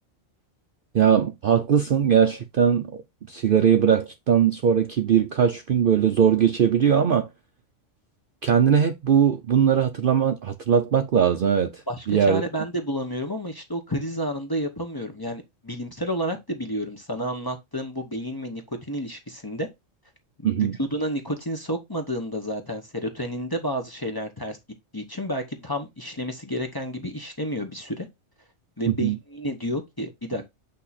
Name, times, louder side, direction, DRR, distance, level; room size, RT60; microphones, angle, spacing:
voice 1, 0.9-2.9 3.3-7.3 8.4-11.8 12.1-12.4 20.4-20.8 28.9-29.2, right 8 dB, 55° right, 0.6 m, -20 dB
voice 2, 11.9-18.6 18.9-19.7 20.4-20.5 20.8-24.6 24.9-28.1 28.8-30.5, equal, 20° left, 0.9 m, -30 dB
8.3 x 2.9 x 4.1 m
omnidirectional pair, 1.4 m